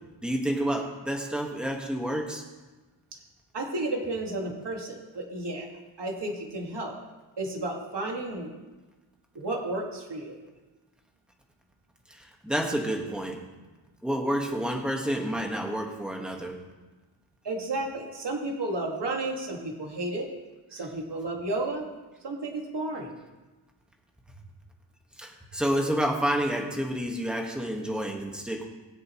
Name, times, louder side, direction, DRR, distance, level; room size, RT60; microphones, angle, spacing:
voice 1, 0.2-2.4 12.1-13.4 14.0-16.6 25.2-28.6, equal, ahead, 0 dB, 1.6 m, -29 dB
voice 2, 3.5-5.7 6.0-7.0 7.4-8.5 9.4-10.4 17.4-20.3 20.7-22.0 22.2-23.1, right 2 dB, 60° right, 0 dB, 2.1 m, -32 dB
21.5 x 7.8 x 3.1 m, 1.2 s
wide cardioid pair, 140°, 47 cm